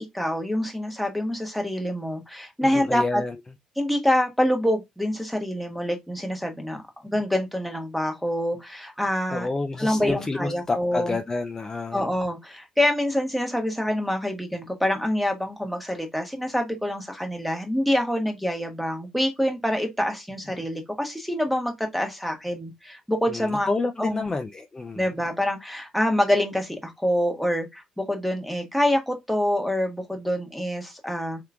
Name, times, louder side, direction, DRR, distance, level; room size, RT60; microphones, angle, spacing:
voice 1, 0.0-3.2 3.8-6.8 7.0-9.5 9.8-11.2 11.9-23.7 24.0-24.3 24.9-31.4, left 1 dB, ahead, 1.1 m, -26 dB
voice 2, 2.6-3.4 9.3-12.1 23.3-25.1, left 3 dB, 25° left, 0.4 m, -29 dB
3.5 x 3.0 x 2.4 m
cardioid pair, 80°, 2 cm